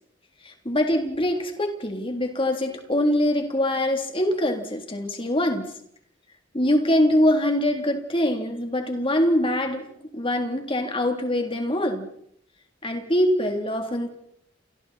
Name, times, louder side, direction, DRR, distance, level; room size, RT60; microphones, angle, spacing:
voice 1, 0.4-5.7 6.5-9.9 10.1-12.1 12.8-14.1, left 1 dB, 30° left, 4 dB, 3.4 m, -23 dB
29.0 x 22.0 x 4.4 m, 0.69 s
head